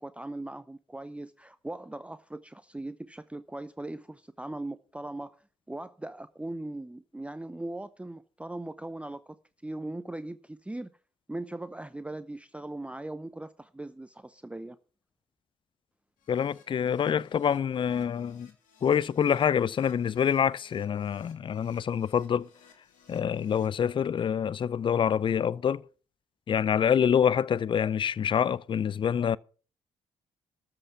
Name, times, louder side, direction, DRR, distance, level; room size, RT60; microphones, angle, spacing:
voice 1, 0.0-5.3 5.7-9.4 9.6-10.9 11.3-14.8, right 2 dB, 10° right, 0.6 m, -39 dB
Keyboard (musical), 16.2-23.7, left 6 dB, 65° left, 3.0 m, -61 dB
voice 2, 16.3-18.5 18.8-22.5 23.1-25.8 26.5-29.4, left 8 dB, 35° left, 0.4 m, -26 dB
13.0 x 5.9 x 7.1 m
hypercardioid pair, 45°, 15 cm